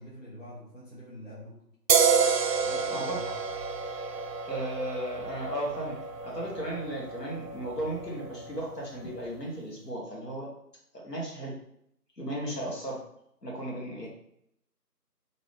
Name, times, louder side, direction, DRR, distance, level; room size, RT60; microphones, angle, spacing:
voice 1, 0.0-1.6 2.6-3.4 14.0-14.1, equal, 50° left, -6 dB, 0.9 m, -44 dB
sound 1, 1.9-9.2, right 6 dB, 80° right, 0.5 m, -30 dB
voice 2, 4.5-6.0 6.2-10.5 10.9-11.5 12.2-13.0 13.4-14.1, right 1 dB, 80° left, -3 dB, 1.5 m, -35 dB
2.9 x 2.7 x 3.5 m, 0.74 s
figure-of-eight pair, 175°, 48 cm